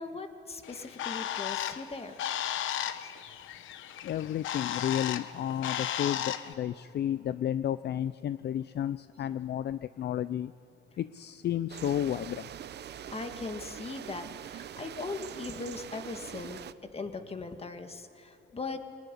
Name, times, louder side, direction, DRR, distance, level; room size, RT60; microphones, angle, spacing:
voice 1, 0.0-2.2 3.0-3.1 13.1-16.6 16.9-18.8, left 3 dB, 30° left, 7 dB, 1.9 m, -39 dB
Bird, 0.6-6.5, left 11 dB, 80° left, 1.0 m, -35 dB
voice 2, 4.0-10.5 11.0-12.5, left 10 dB, 60° left, 15 dB, 0.5 m, -32 dB
sound 1, 11.7-16.7, right 10 dB, 60° right, 0.7 m, -43 dB
22.5 x 18.0 x 9.9 m, 2.6 s
cardioid pair, 90°, 20 cm